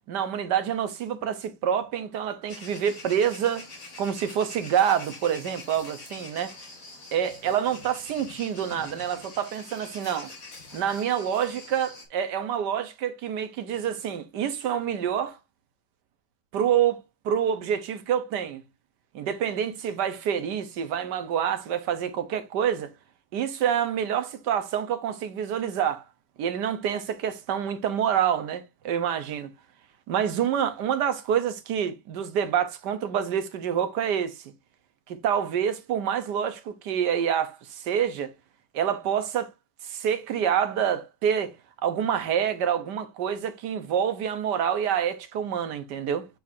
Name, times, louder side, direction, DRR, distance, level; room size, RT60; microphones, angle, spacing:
voice 1, 0.1-3.7 4.0-6.6 7.1-10.3 10.7-15.4 16.5-18.6 19.1-22.9 23.3-26.0 26.4-29.5 30.1-34.5 35.1-38.3 38.7-39.5 39.8-41.5 41.8-46.3, right 9 dB, 75° right, 1.5 m, -27 dB
sound 1, 2.5-12.1, left 3 dB, 55° left, 2.2 m, -45 dB
8.5 x 4.3 x 2.6 m
omnidirectional pair, 1.9 m